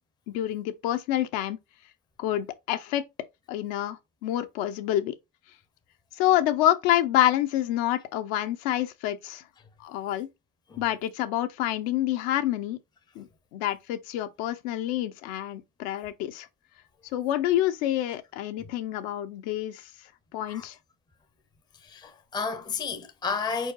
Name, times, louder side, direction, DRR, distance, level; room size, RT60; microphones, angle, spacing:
voice 1, 0.3-1.6 2.2-3.0 3.5-5.1 6.2-9.4 9.8-10.3 10.8-12.8 13.2-13.3 13.5-16.5 17.1-19.8 20.3-20.8, left 13 dB, 70° left, 1.0 m, -27 dB
voice 2, 21.8-23.7, left 5 dB, 10° left, 0.6 m, -32 dB
4.6 x 4.6 x 2.4 m
cardioid pair, 140°, 44 cm